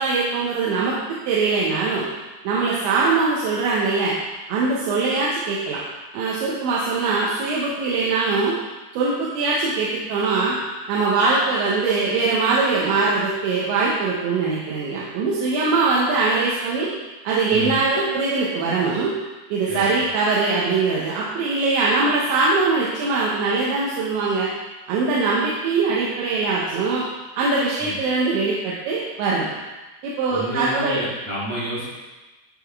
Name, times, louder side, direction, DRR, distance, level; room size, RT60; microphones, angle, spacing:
voice 1, 0.0-2.0 2.4-4.1 4.5-5.8 6.1-8.5 8.9-10.6 10.9-16.9 17.2-19.1 19.5-24.5 24.9-27.1 27.4-29.5 30.0-31.0, right 3 dB, 85° right, -5 dB, 3.1 m, -22 dB
voice 2, 19.7-20.0 27.8-27.9 30.3-31.9, equal, 55° right, -8 dB, 2.0 m, -29 dB
10.5 x 3.7 x 3.5 m, 1.2 s
omnidirectional pair, 5.1 m